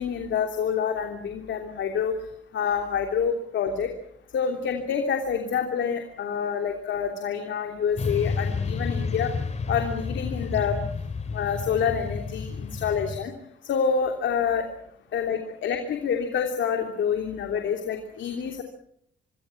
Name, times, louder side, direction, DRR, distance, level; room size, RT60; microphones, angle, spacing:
voice 1, 0.0-2.1 2.5-3.9 4.3-9.3 9.7-10.8 11.3-13.3 13.6-14.7 15.1-18.6, left 7 dB, 70° left, 4 dB, 3.1 m, -27 dB
Motorcycle / Traffic noise roadway noise, 8.0-13.2, left 4 dB, 35° left, 2.9 m, -30 dB
26.0 x 24.0 x 5.9 m, 0.69 s
cardioid pair, 90°, 20 cm